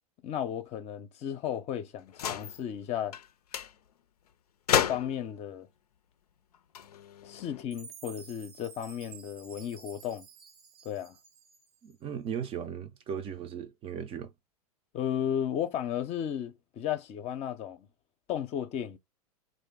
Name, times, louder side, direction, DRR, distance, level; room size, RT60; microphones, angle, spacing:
voice 1, 0.2-3.1 4.7-5.7 7.2-10.3 10.8-11.2 14.9-17.9 18.3-19.0, left 9 dB, 35° left, 0.6 m, -34 dB
sound 1, 2.1-2.6 3.1-3.3 3.5-3.7 4.7-5.3 6.5-7.6, left 9 dB, 80° left, 0.4 m, -31 dB
Chime, 7.7-11.9, right 6 dB, 70° right, 0.8 m, -51 dB
voice 2, 11.8-14.3, right 8 dB, 30° right, 0.5 m, -37 dB
3.1 x 2.6 x 3.6 m
hypercardioid pair, 100°, 19 cm